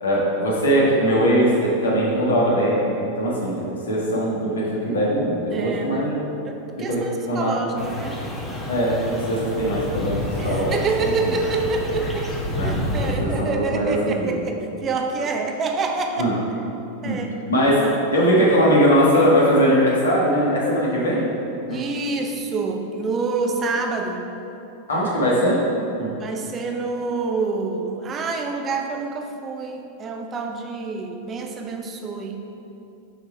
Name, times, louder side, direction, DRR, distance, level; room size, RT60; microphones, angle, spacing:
voice 1, 0.0-6.1 6.9-7.6 8.7-10.7 11.0-11.1 12.6-14.3 16.2-16.3 17.0-17.2 17.5-17.8 18.1-21.3 21.7-21.8 24.9-25.6 26.0-26.1, equal, 70° left, -5 dB, 1.6 m, -20 dB
voice 2, 5.5-6.2 6.4-8.2 10.4-12.4 12.6-16.6 17.0-17.3 17.8-18.0 21.7-24.3 26.2-32.4, right 4 dB, 25° right, 3 dB, 0.7 m, -27 dB
sound 1, 7.8-13.1, left 1 dB, 10° left, 1.1 m, -29 dB
6.2 x 5.4 x 4.6 m, 3.0 s
figure-of-eight pair, 90°, 0 cm